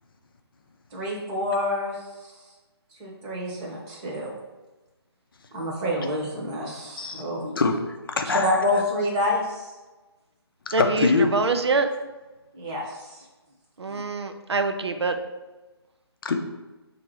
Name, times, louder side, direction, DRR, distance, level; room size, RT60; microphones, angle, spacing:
voice 1, 0.9-2.3 2.9-4.3 5.5-7.5 8.4-9.7 12.5-13.2 13.9-14.0, left 1 dB, 20° right, -3 dB, 0.9 m, -28 dB
voice 2, 7.6-8.8 10.8-11.3 16.2-16.4, left 4 dB, 55° left, 5 dB, 0.6 m, -24 dB
voice 3, 10.7-11.9 13.8-15.2, right 4 dB, 75° right, 7 dB, 0.5 m, -25 dB
4.2 x 2.7 x 4.6 m, 1.2 s
figure-of-eight pair, 150°, 14 cm